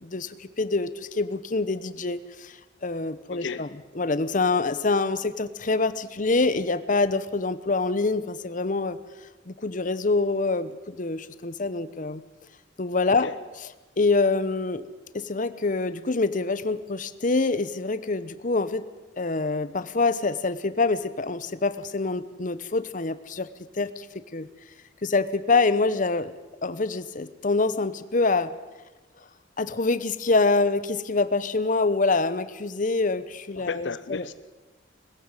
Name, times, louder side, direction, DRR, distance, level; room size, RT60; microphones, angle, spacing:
voice 1, 0.0-3.7 4.0-9.0 9.5-12.2 12.8-13.3 14.0-14.8 15.1-18.8 19.2-23.5 23.7-24.1 24.3-24.5 25.0-26.3 26.6-28.5 29.6-34.2, left 3 dB, 45° left, 14 dB, 0.9 m, -25 dB
voice 2, 3.3-3.7 13.2-13.3 33.6-34.3, left 5 dB, 75° left, 14 dB, 0.7 m, -33 dB
20.5 x 15.5 x 9.0 m, 1.2 s
head